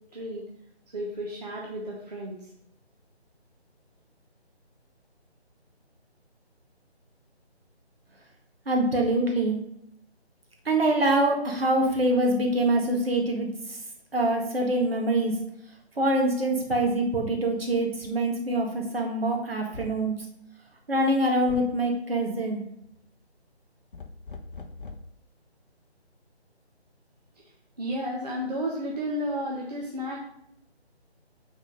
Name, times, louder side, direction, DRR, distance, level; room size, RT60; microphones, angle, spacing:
voice 1, 0.1-0.4 0.9-2.5 27.8-30.2, equal, 40° right, -2 dB, 1.0 m, -32 dB
voice 2, 8.7-9.6 10.7-13.8 14.1-15.4 16.0-20.1 20.9-22.6, right 1 dB, 60° right, 1 dB, 1.9 m, -25 dB
sound 1, 18.0-18.2 19.7-20.1 21.5-21.8 23.9-25.2, left 3 dB, 50° left, 0.7 m, -41 dB
6.2 x 4.3 x 5.4 m, 0.75 s
figure-of-eight pair, 165°, 33 cm